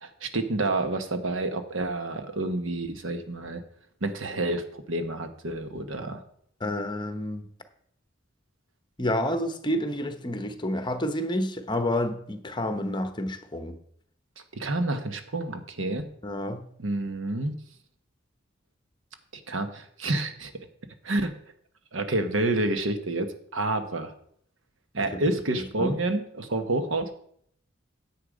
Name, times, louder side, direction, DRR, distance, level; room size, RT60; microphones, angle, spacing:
voice 1, 0.0-3.6 4.0-6.2 14.5-16.1 16.8-17.5 19.5-20.5 21.0-21.3 21.9-24.1 24.9-27.1, right 2 dB, 85° right, 8 dB, 1.2 m, -29 dB
voice 2, 6.6-7.4 9.0-13.7 16.2-16.6 25.6-25.9, left 1 dB, 25° left, 9 dB, 1.0 m, -29 dB
10.0 x 7.8 x 5.1 m, 0.65 s
head